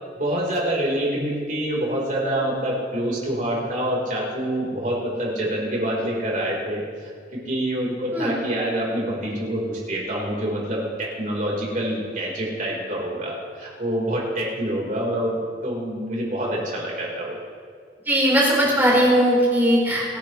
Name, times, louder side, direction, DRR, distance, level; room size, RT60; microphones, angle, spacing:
voice 1, 0.2-6.8 7.3-17.4, right 1 dB, 45° right, -3 dB, 4.2 m, -26 dB
voice 2, 18.1-20.0, equal, 10° right, -5 dB, 4.2 m, -18 dB
29.0 x 10.5 x 3.2 m, 2.2 s
head